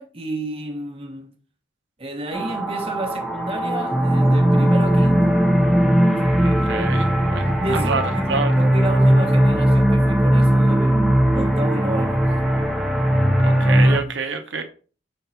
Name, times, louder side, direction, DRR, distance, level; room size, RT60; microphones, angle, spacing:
voice 1, 0.0-1.3 2.0-5.3 6.1-6.3 7.4-12.3, right 1 dB, 30° right, 1.2 m, -31 dB
sound 1, 2.3-14.0, right 1 dB, ahead, 0.7 m, -18 dB
voice 2, 6.4-8.0 8.3-8.5 13.4-14.6, right 4 dB, 75° right, 1.0 m, -27 dB
5.4 x 3.6 x 5.7 m
head